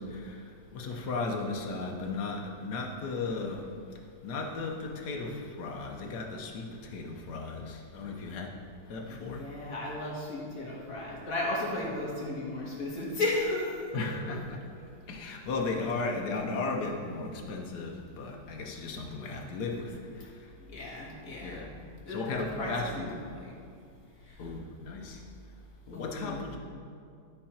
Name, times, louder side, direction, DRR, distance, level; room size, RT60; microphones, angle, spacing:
voice 1, 0.0-3.7 4.2-8.5 8.8-9.5 13.9-14.6 15.1-20.5 21.4-21.7 22.1-23.2 24.4-25.2 25.9-26.6, left 3 dB, 75° left, 1 dB, 1.5 m, -36 dB
voice 2, 9.1-13.7 20.7-21.6 22.1-23.5 25.9-26.4, left 2 dB, 60° left, -4 dB, 1.8 m, -34 dB
12.0 x 4.3 x 4.3 m, 2.3 s
omnidirectional pair, 1.8 m